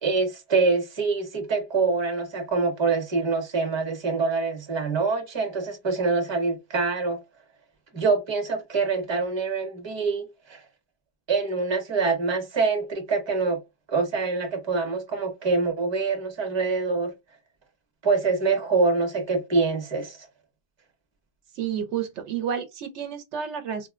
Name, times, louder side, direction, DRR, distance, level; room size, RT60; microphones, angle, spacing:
voice 1, 0.0-7.2 7.9-10.6 11.3-13.6 13.9-17.1 18.0-20.3, right 4 dB, 25° right, 0.8 m, -25 dB
voice 2, 21.5-23.9, right 8 dB, 80° right, 0.9 m, -30 dB
4.0 x 2.0 x 2.4 m
omnidirectional pair, 1.2 m